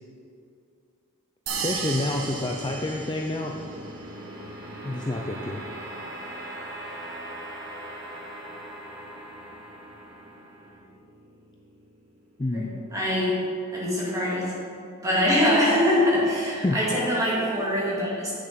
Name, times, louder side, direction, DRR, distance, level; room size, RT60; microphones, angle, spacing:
sound 1, 1.5-12.7, right 1 dB, 50° right, 1.7 m, -40 dB
sound 2, 1.5-3.7, right 5 dB, 75° right, 1.1 m, -34 dB
voice 1, 1.6-3.5 4.8-5.6 12.4-12.7 16.6-16.8, left 2 dB, 20° left, 1 dB, 0.4 m, -28 dB
voice 2, 12.5-13.4 13.7-14.4 15.0-18.3, left 1 dB, 15° right, -7 dB, 2.2 m, -23 dB
8.1 x 6.9 x 5.2 m, 2.5 s
head